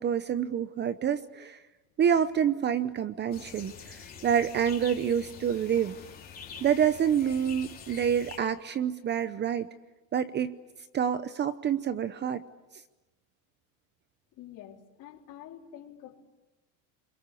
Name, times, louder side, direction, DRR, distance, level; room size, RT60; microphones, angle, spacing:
voice 1, 0.0-1.6 2.0-6.0 6.6-9.7 10.1-10.6 10.9-12.4, right 8 dB, 25° right, 13 dB, 0.8 m, -27 dB
sound 1, 3.3-8.4, left 7 dB, 20° left, 3.9 m, -46 dB
voice 2, 14.3-16.2, left 10 dB, 45° left, 1 dB, 4.1 m, -47 dB
30.0 x 22.5 x 8.4 m, 1.1 s
supercardioid pair, 135°, 41 cm